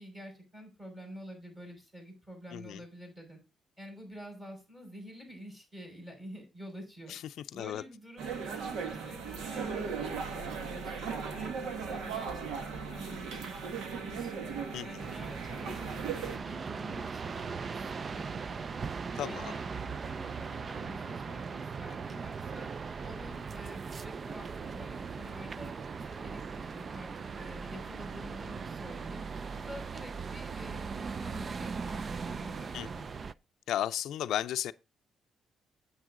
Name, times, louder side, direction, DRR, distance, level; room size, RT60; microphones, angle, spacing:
voice 1, 0.0-3.4 3.8-7.1 7.5-14.5 14.8-18.9 19.3-22.7 23.0-29.2 29.5-33.3, equal, 15° right, 5.8 m, -48 dB
voice 2, 7.5-7.8 14.7-15.0 19.2-19.5 32.7-33.0 33.7-34.7, left 11 dB, 75° left, 0.4 m, -34 dB
sound 1, 8.2-16.4, right 6 dB, 80° right, 1.7 m, -37 dB
sound 2, 15.0-33.3, right 5 dB, 35° right, 0.4 m, -39 dB
9.2 x 8.1 x 3.7 m
cardioid pair, 130°, 0 cm